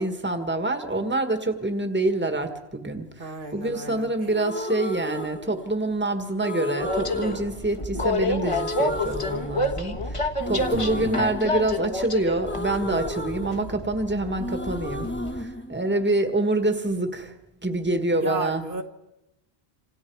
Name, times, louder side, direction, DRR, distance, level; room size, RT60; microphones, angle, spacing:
voice 1, 0.0-15.1 15.4-17.3 17.6-18.6, right 2 dB, 10° right, 7 dB, 1.6 m, -26 dB
voice 2, 3.2-4.3 10.7-11.1 18.2-18.8, right 2 dB, 55° right, 5 dB, 1.6 m, -34 dB
sound 1, 4.3-6.0 6.4-8.2 8.4-10.0 10.4-14.1 14.4-16.4, left 1 dB, 10° left, 1.2 m, -34 dB
Train, 6.8-15.4, left 2 dB, 30° left, 1.5 m, -29 dB
27.0 x 27.0 x 4.7 m, 0.94 s
omnidirectional pair, 1.1 m